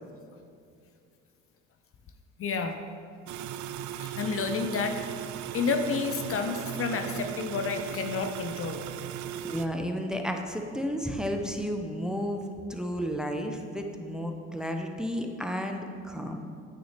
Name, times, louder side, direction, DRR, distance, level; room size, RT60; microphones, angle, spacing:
voice 1, 2.4-2.8 4.0-5.0 5.5-8.8, left 5 dB, 45° left, 6 dB, 0.6 m, -30 dB
sound 1, 3.3-9.7, right 10 dB, 65° right, 0.5 m, -37 dB
voice 2, 9.4-16.4, equal, ahead, 4 dB, 0.7 m, -32 dB
9.0 x 6.2 x 3.3 m, 2.4 s
supercardioid pair, 70°, 32 cm